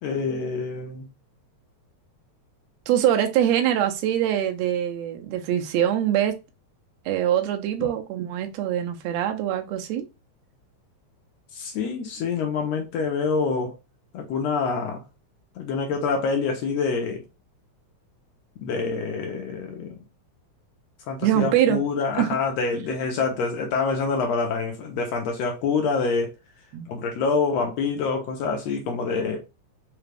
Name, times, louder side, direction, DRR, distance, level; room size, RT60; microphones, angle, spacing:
voice 1, 0.0-1.1 11.5-13.8 14.1-15.0 15.6-17.2 18.6-20.0 21.1-26.3 26.9-29.4, left 4 dB, 75° left, 1.7 m, -26 dB
voice 2, 2.9-6.4 7.1-10.1 21.2-21.8 22.2-22.4 26.7-26.9, right 11 dB, 75° right, 1.6 m, -23 dB
4.9 x 2.3 x 3.2 m
omnidirectional pair, 3.4 m